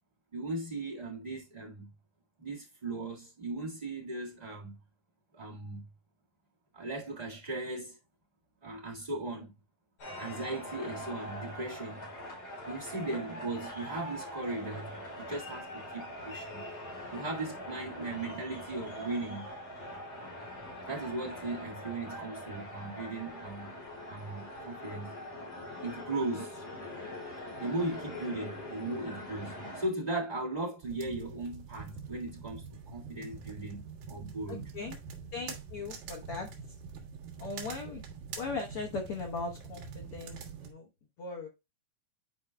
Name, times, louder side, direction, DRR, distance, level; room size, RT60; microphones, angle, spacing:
voice 1, 0.3-1.9 2.4-4.8 5.3-5.9 6.7-8.0 8.6-9.5 10.2-12.0 12.7-16.6 17.1-19.5 20.9-23.7 24.1-25.1 25.8-26.6 27.6-34.6, right 2 dB, 30° right, 0.7 m, -37 dB
sound 1, 10.0-29.9, left 1 dB, 40° left, 4.6 m, -43 dB
sound 2, 30.8-40.7, right 5 dB, 80° right, 3.3 m, -45 dB
voice 2, 34.5-35.0 35.3-36.7 37.4-38.0 38.3-40.9 41.2-41.5, left 4 dB, 85° left, 1.2 m, -39 dB
10.5 x 4.8 x 2.2 m
omnidirectional pair, 4.1 m